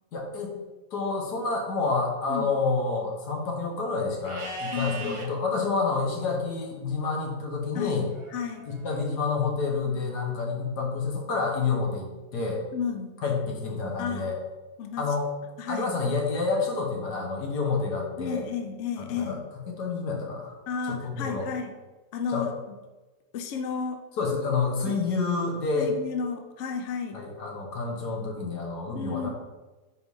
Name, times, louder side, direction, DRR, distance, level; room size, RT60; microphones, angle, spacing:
voice 1, 0.1-0.5 0.9-8.1 8.7-12.1 12.3-12.6 13.2-14.4 15.0-15.3 15.7-18.4 19.1-19.4 19.8-20.6 20.9-21.5 22.3-22.5 24.2-25.9 27.1-29.3, left 4 dB, 85° left, 0 dB, 1.7 m, -28 dB
Livestock farm animals working animals, 4.2-5.3 8.1-9.1, right 2 dB, 45° right, 0.4 m, -39 dB
voice 2, 4.7-5.2 7.7-8.0 8.3-8.7 12.7-13.1 14.0-14.3 14.8-15.1 15.6-15.9 18.2-19.4 20.7-21.7 22.1-22.7 23.3-24.0 24.8-25.0 25.8-27.2 28.9-29.3, left 6 dB, 60° left, 5 dB, 0.8 m, -32 dB
4.7 x 4.4 x 5.3 m, 1.2 s
omnidirectional pair, 1.7 m